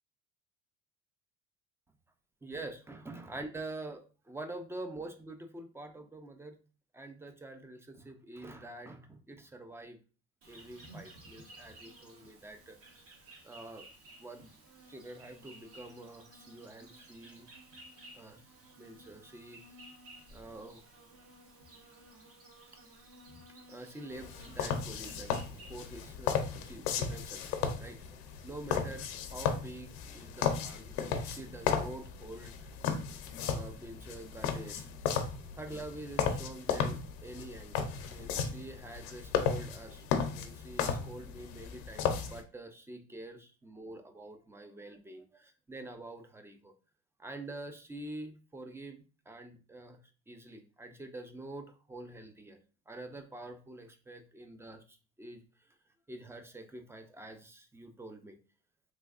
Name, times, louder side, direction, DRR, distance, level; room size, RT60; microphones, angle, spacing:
voice 1, 2.4-6.6 6.9-10.0 10.5-13.1 13.4-13.9 14.2-14.5 14.9-17.5 18.2-18.4 18.8-19.6 20.3-20.8 23.7-25.4 25.7-28.0 28.4-32.7 33.4-34.9 35.6-40.0 40.3-46.7 47.2-50.0 50.3-52.6 52.9-55.4 56.1-58.4, right 2 dB, 10° right, 7 dB, 0.4 m, -46 dB
Insect, 10.4-26.2, right 1 dB, 45° right, 1.1 m, -55 dB
sound 1, 24.1-42.4, left 7 dB, 85° left, 0.6 m, -35 dB
3.5 x 3.1 x 2.3 m, 0.36 s
supercardioid pair, 105°, 33 cm